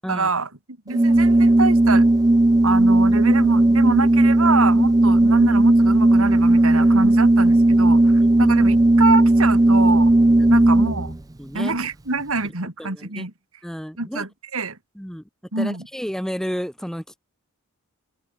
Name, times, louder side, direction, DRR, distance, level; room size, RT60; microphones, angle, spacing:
voice 1, 0.1-2.1 2.6-10.1 10.5-11.1 11.5-13.3 14.0-14.8 15.5-15.9, right 3 dB, 70° right, 3.1 m, -26 dB
Organ, 0.9-11.2, right 1 dB, 15° right, 0.5 m, -16 dB
voice 2, 11.4-11.8 12.8-13.3 13.6-14.3 15.0-15.2 15.6-17.2, equal, ahead, 2.1 m, -32 dB
open air
head